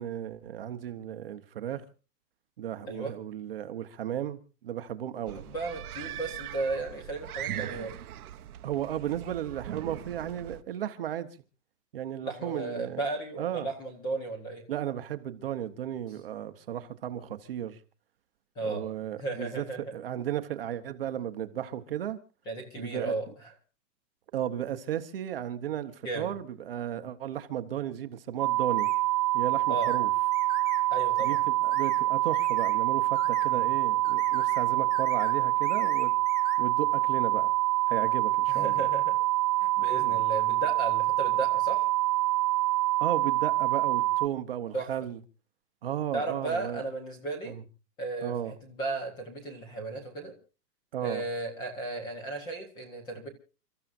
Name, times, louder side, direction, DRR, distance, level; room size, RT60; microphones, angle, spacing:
voice 1, 0.0-1.8 2.6-5.4 8.6-11.3 11.9-13.0 13.4-13.7 14.7-17.8 18.6-19.6 19.9-22.2 22.8-23.1 24.3-28.9 29.3-30.1 31.2-36.1 36.6-37.5 37.9-38.9 40.0-40.2 43.0-45.2 45.8-46.8 47.4-47.6 48.2-48.5 50.9-51.2, right 11 dB, 35° right, 0.9 m, -34 dB
sound 1, 5.3-10.6, right 12 dB, 65° right, 1.0 m, -40 dB
voice 2, 5.5-7.9 12.2-14.6 18.6-18.8 19.2-19.9 22.5-23.5 26.0-26.3 29.7-29.9 30.9-31.4 33.5-33.7 38.5-39.1 39.6-41.8 44.7-44.9 46.1-47.6 48.0-48.3 48.6-50.3 51.0-53.3, right 3 dB, 10° left, 0.9 m, -35 dB
sound 2, 28.4-44.3, right 18 dB, 85° right, 0.6 m, -26 dB
sound 3, 28.8-29.0 29.8-30.0 30.3-30.8 31.2-31.4 31.7-32.0 32.3-32.7 33.1-33.5 34.0-34.6 34.9-35.4 35.6-36.6, left 6 dB, 80° left, 3.5 m, -44 dB
29.5 x 14.0 x 2.6 m
hypercardioid pair, 175°, 49 cm